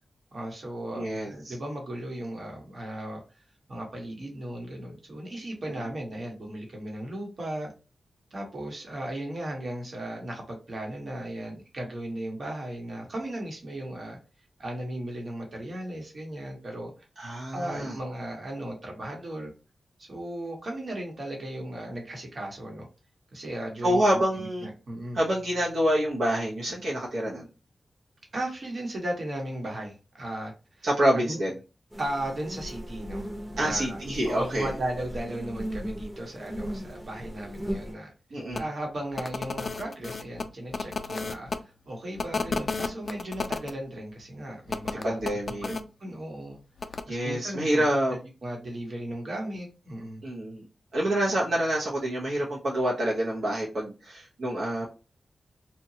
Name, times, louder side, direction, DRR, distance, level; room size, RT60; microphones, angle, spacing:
voice 1, 0.3-3.2 3.7-7.7 8.3-14.2 14.6-16.9 17.5-19.5 20.0-22.9 23.3-25.2 28.3-30.9 31.3-31.4 32.0-33.3 33.5-41.5 41.9-45.2 45.7-46.6 47.1-50.2, right 1 dB, 55° right, 1 dB, 1.0 m, -36 dB
voice 2, 0.9-1.5 17.2-18.0 23.8-24.7 25.1-27.5 30.8-31.5 33.6-34.7 38.3-38.7 45.0-45.7 47.1-48.2 50.2-50.7 50.9-54.9, right 1 dB, 80° right, -4 dB, 0.8 m, -27 dB
sound 1, 31.9-37.9, equal, 10° right, 0.7 m, -37 dB
sound 2, 38.5-38.6 39.1-41.6 42.2-43.7 44.7-45.8 46.8-47.0, left 4 dB, 55° left, 0.3 m, -32 dB
2.8 x 2.2 x 2.7 m, 0.31 s
wide cardioid pair, 80°, 0 cm